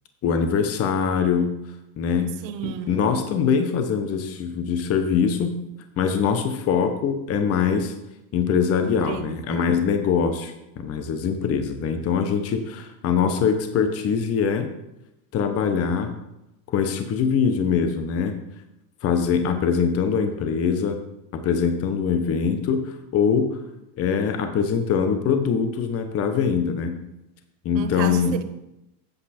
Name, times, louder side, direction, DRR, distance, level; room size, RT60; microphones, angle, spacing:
voice 1, 0.2-1.6 2.0-2.3 2.6-5.5 6.0-7.9 8.3-14.7 15.3-16.1 16.7-18.3 19.0-21.0 21.3-23.6 24.0-27.0 27.6-28.3, left 6 dB, 30° left, 0.8 m, -23 dB
voice 2, 2.2-3.1 8.8-9.8 27.7-28.4, right 9 dB, 90° right, 1.0 m, -33 dB
7.9 x 7.2 x 4.2 m
supercardioid pair, 135°, 49 cm